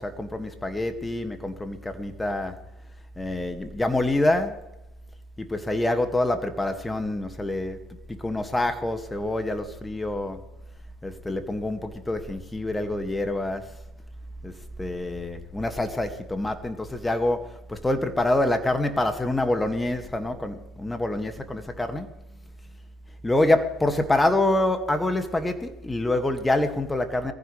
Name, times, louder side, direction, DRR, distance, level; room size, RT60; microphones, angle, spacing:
voice 1, 0.0-2.6 3.2-4.7 5.4-7.8 8.1-10.4 11.0-13.8 14.4-14.5 14.8-22.1 23.2-27.3, left 1 dB, 10° left, 2.1 m, -26 dB
23.0 x 15.0 x 3.4 m
hypercardioid pair, 75°, 0 cm